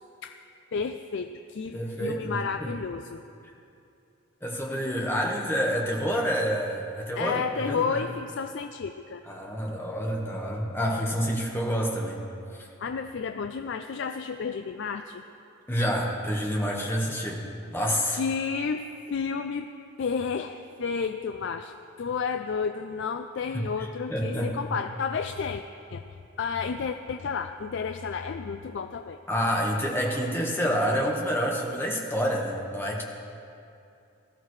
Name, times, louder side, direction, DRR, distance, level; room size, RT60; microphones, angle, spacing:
voice 1, 0.7-3.2 7.2-9.2 12.8-15.2 18.1-19.7 20.0-25.6 25.9-26.0 26.4-29.2, left 5 dB, 55° left, 7 dB, 0.3 m, -31 dB
voice 2, 1.7-2.7 4.4-8.0 9.3-12.2 12.6-12.7 15.7-17.4 17.7-18.2 23.5-23.6 24.1-24.8 29.3-33.0, equal, 10° left, -2 dB, 1.3 m, -28 dB
19.0 x 13.5 x 3.2 m, 2.6 s
head